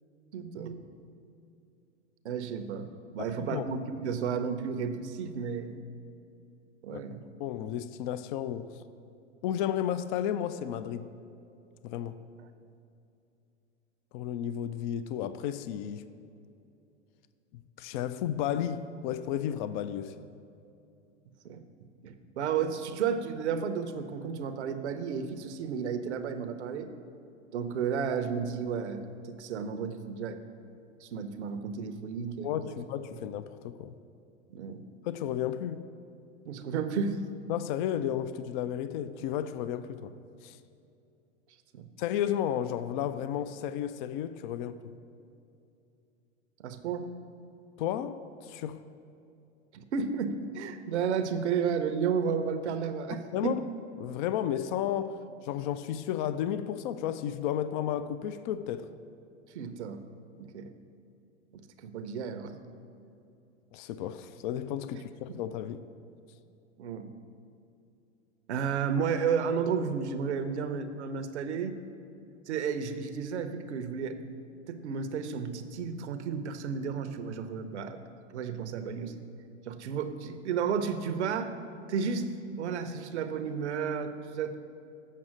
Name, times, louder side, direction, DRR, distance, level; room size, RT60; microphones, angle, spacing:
voice 1, 0.3-0.8 2.2-5.8 6.8-7.3 21.4-21.6 22.0-26.9 27.5-30.4 31.0-32.7 34.5-34.8 36.5-37.3 41.7-41.9 46.6-47.1 49.7-53.6 59.5-60.0 60.4-60.7 61.5-62.6 65.3-65.4 66.8-67.1 68.5-71.8 72.5-74.2 74.7-78.0 78.3-79.2 79.7-81.5 81.9-82.3 82.6-84.5, right 6 dB, 75° right, 0.8 m, -32 dB
voice 2, 3.2-3.6 6.9-7.0 7.4-8.7 9.4-11.1 11.8-12.2 14.1-16.1 17.5-20.1 32.4-33.9 35.0-35.9 37.5-40.1 40.4-40.6 42.0-44.8 47.8-48.8 53.1-53.6 54.0-58.9 63.7-65.9, left 10 dB, 45° left, 0.4 m, -33 dB
7.5 x 5.5 x 6.3 m
hypercardioid pair, 110°, 35 cm